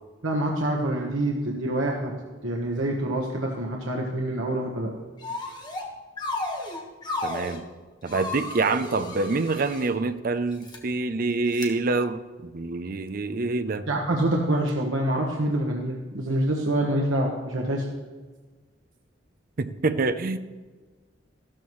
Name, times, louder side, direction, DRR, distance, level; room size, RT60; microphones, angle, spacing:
voice 1, 0.2-2.1 2.4-4.9 13.9-17.9, right 1 dB, 90° right, -1 dB, 1.3 m, -26 dB
sound 1, 5.2-5.9 6.2-7.6 8.1-9.9 10.5-10.8 11.5-11.7, left 2 dB, 20° left, 1.3 m, -33 dB
voice 2, 7.2-7.6 8.0-13.9 19.6-20.4, right 3 dB, 50° right, 10 dB, 0.6 m, -26 dB
14.0 x 13.0 x 3.1 m, 1.3 s
head